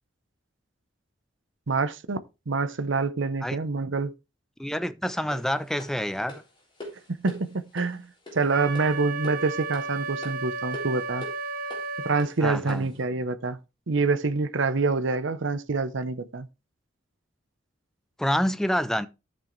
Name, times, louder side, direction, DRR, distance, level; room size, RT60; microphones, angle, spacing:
voice 1, 1.7-2.2 2.5-4.1 7.1-8.1 8.3-11.3 12.1-13.6 13.9-16.5, right 3 dB, 65° right, 0.7 m, -26 dB
voice 2, 4.6-6.4 12.4-12.9 18.2-19.1, equal, ahead, 0.4 m, -27 dB
sound 1, 5.3-13.0, left 1 dB, 25° left, 3.7 m, -45 dB
Wind instrument woodwind instrument, 8.5-12.3, right 4 dB, 45° right, 1.2 m, -33 dB
13.5 x 6.2 x 3.1 m
head